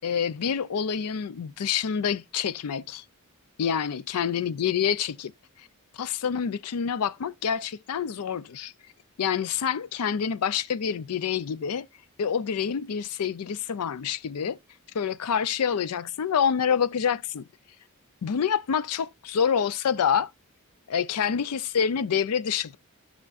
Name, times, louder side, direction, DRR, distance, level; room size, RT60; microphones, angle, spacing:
voice 1, 0.0-3.0 3.6-5.3 5.9-8.7 9.2-11.9 12.2-14.6 14.9-17.5 18.2-20.3 20.9-22.8, left 7 dB, 90° left, 0.4 m, -27 dB
13.0 x 5.8 x 2.4 m
head